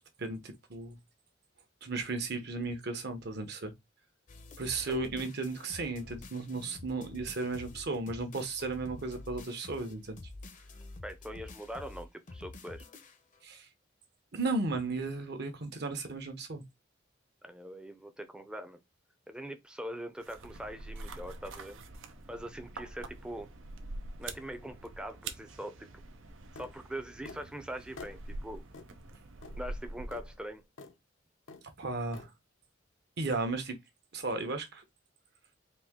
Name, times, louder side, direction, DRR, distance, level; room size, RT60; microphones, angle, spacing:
voice 1, 0.2-1.0 1.8-3.7 4.6-10.2 13.4-13.7 14.3-16.6 31.8-32.3 33.2-33.8 34.1-34.8, right 3 dB, 55° right, 1.0 m, -35 dB
sound 1, 4.3-13.4, left 2 dB, 40° left, 0.7 m, -49 dB
voice 2, 11.0-12.8 17.4-18.8 19.3-21.8 22.3-23.5 24.2-25.9 26.5-28.6 29.6-30.6, equal, 5° right, 0.6 m, -42 dB
sound 2, 20.2-30.6, right 2 dB, 75° right, 0.7 m, -45 dB
sound 3, 26.6-26.7 27.2-27.4 28.0-28.2 28.7-28.9 29.4-29.6 30.1-30.2 30.8-30.9 31.5-31.7 32.1-32.3, left 3 dB, 75° left, 0.8 m, -47 dB
4.3 x 2.7 x 3.6 m
head